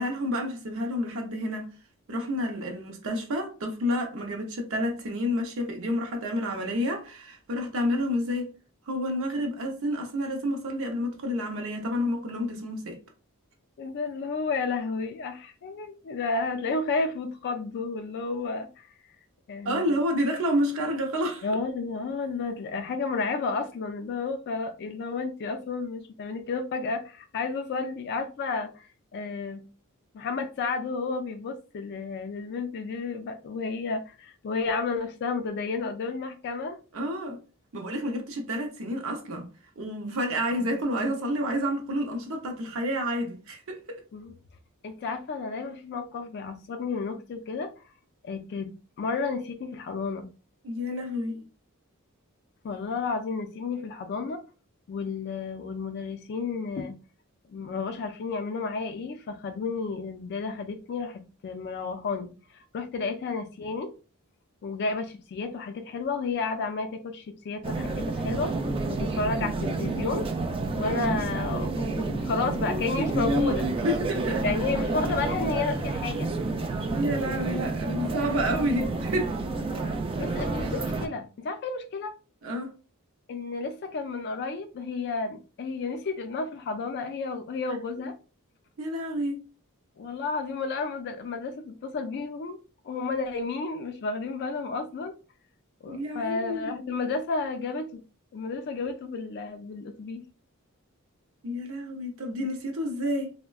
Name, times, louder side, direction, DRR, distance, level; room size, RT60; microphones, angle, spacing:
voice 1, 0.0-1.7 2.1-8.5 8.9-13.0 19.6-21.4 36.9-37.4 37.7-39.5 39.8-44.0 50.6-51.4 73.8-74.4 77.0-79.4 82.4-82.7 88.8-89.4 95.9-96.7 101.4-103.3, equal, 65° right, 0.6 m, -29 dB
voice 2, 13.8-18.9 19.5-19.9 21.4-29.6 30.1-36.8 40.5-40.7 44.1-44.3 44.8-47.7 48.2-48.7 49.0-50.3 52.6-54.4 54.9-56.9 57.5-63.9 64.6-68.5 68.9-70.3 70.7-73.6 74.4-76.3 79.6-79.7 80.2-82.1 83.3-88.1 90.0-92.6 92.8-95.1 95.8-98.0 98.3-100.2, left 4 dB, 50° left, 0.3 m, -32 dB
sound 1, 67.6-81.1, right 2 dB, 25° right, 0.3 m, -29 dB
3.5 x 2.1 x 2.3 m
head